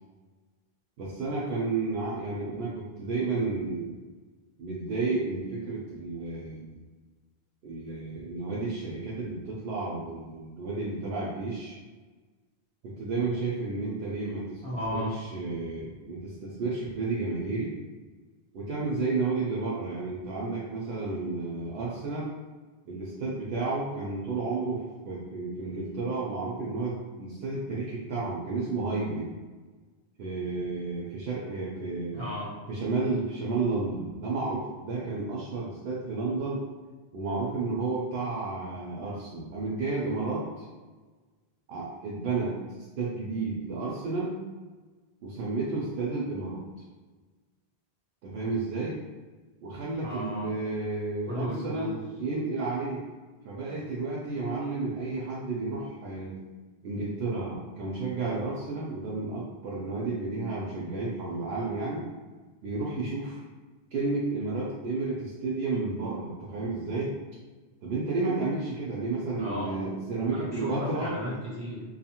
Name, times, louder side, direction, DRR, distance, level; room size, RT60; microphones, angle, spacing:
voice 1, 1.0-4.0 4.6-6.8 7.6-11.8 12.8-14.6 14.9-17.7 18.5-22.3 22.9-29.3 30.2-32.2 32.7-36.6 37.1-40.7 41.7-42.5 43.0-44.4 45.2-46.6 48.2-49.0 49.6-53.0 53.4-56.4 56.8-62.1 62.6-63.4 63.9-67.2 67.8-71.1, right 3 dB, 75° right, -5 dB, 0.8 m, -32 dB
voice 2, 14.6-15.1 32.1-32.6 50.0-50.5 51.3-51.9 69.4-69.9 70.3-71.8, left 1 dB, 25° left, -11 dB, 1.3 m, -34 dB
2.6 x 2.4 x 2.8 m, 1.3 s
omnidirectional pair, 1.0 m